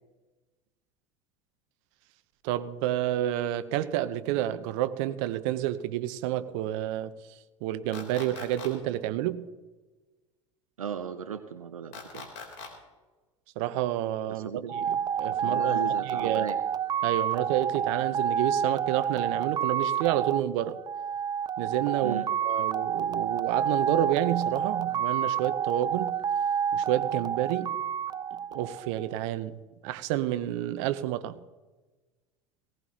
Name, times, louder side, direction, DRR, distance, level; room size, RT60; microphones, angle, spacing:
voice 1, 2.4-7.1 7.6-9.4 13.6-14.5 14.9-16.5 17.0-20.8 21.6-26.1 26.7-27.7 28.5-29.6 29.8-31.4, right 13 dB, 60° right, 0.8 m, -29 dB
sound 1, 7.9-8.7 11.9-12.7, left 5 dB, 65° left, 3.5 m, -41 dB
voice 2, 10.8-12.3 14.3-15.0 15.4-16.6 22.0-22.3, right 7 dB, 90° right, 0.6 m, -36 dB
sound 2, 14.7-29.1, right 8 dB, 25° right, 0.4 m, -29 dB
18.5 x 17.5 x 2.9 m
hypercardioid pair, 75°, 17 cm